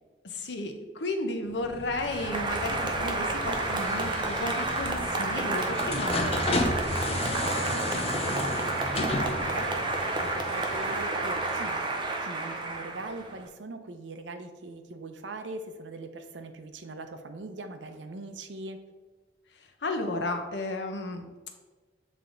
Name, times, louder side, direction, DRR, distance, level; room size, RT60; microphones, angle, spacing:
voice 1, 0.2-6.3 19.8-21.3, left 2 dB, 75° left, 5 dB, 0.8 m, -33 dB
sound 1, 1.5-12.2, left 2 dB, 35° left, 0.6 m, -34 dB
Applause, 1.9-13.4, right 2 dB, 25° right, 0.6 m, -30 dB
voice 2, 7.3-9.9 10.2-11.8 12.2-18.8, right 2 dB, 90° right, 7 dB, 0.6 m, -41 dB
7.4 x 3.4 x 3.8 m, 1.2 s
head